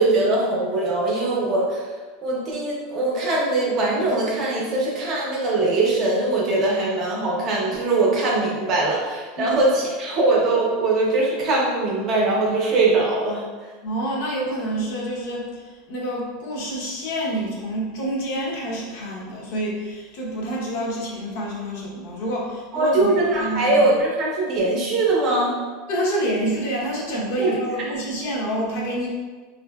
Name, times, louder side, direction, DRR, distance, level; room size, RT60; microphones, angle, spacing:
voice 1, 0.0-1.9 2.2-13.4 22.7-25.5 27.4-27.6, right 2 dB, 30° right, -3 dB, 0.6 m, -21 dB
voice 2, 13.8-23.1 23.4-23.9 25.9-29.1, right 1 dB, 55° left, -3 dB, 0.7 m, -27 dB
3.6 x 2.5 x 2.2 m, 1.4 s
supercardioid pair, 170°, 0 cm